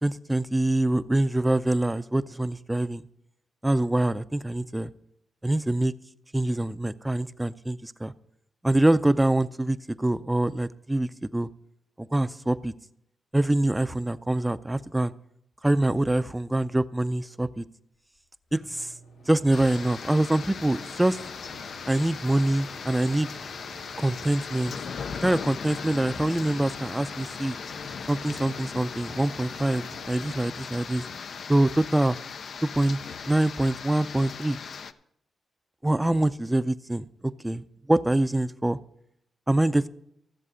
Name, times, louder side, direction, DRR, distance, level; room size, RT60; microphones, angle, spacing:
voice 1, 0.0-3.0 3.6-4.9 5.4-5.9 6.3-8.1 8.6-11.5 12.0-12.7 13.3-15.1 15.6-17.6 18.5-18.9 19.3-21.2 21.9-23.3 24.0-24.7 25.2-27.6 28.1-31.0 31.5-32.2 32.6-33.0 33.3-34.6 35.8-37.0 37.4-37.6 37.9-38.8 39.5-39.9, right 1 dB, 10° right, 14 dB, 0.5 m, -24 dB
sound 1, 18.2-18.3 18.5-31.1 31.5-32.7, left 1 dB, 85° left, 2.8 m, -47 dB
sound 2, 19.5-34.9, left 6 dB, 65° left, 0.5 m, -38 dB
13.5 x 7.5 x 5.0 m, 0.78 s
cardioid pair, 70°, 0 cm